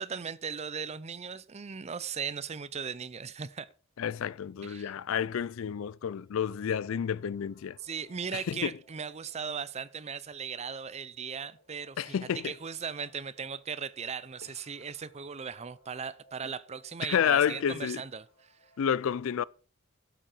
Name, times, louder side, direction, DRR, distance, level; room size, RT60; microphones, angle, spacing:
voice 1, 0.0-3.7 4.6-4.9 7.8-18.5, right 6 dB, 30° right, 0.5 m, -38 dB
voice 2, 4.0-7.8 8.3-8.7 12.0-12.5 17.0-18.0 18.8-19.4, left 8 dB, 70° left, 0.4 m, -30 dB
sound 1, 5.6-18.8, right 1 dB, 50° left, 3.9 m, -64 dB
11.5 x 7.5 x 4.4 m
head